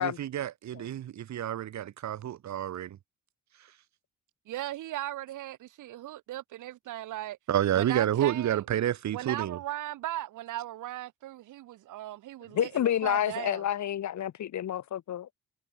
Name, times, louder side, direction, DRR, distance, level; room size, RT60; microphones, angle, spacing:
voice 1, 0.0-3.0 7.5-9.6, right 11 dB, 65° right, 1.9 m, -29 dB
voice 2, 4.5-7.4 7.7-8.6 9.1-13.7, right 14 dB, 85° right, 5.8 m, -37 dB
voice 3, 12.5-15.3, left 11 dB, 70° left, 4.2 m, -29 dB
cardioid pair, 90°, 30 cm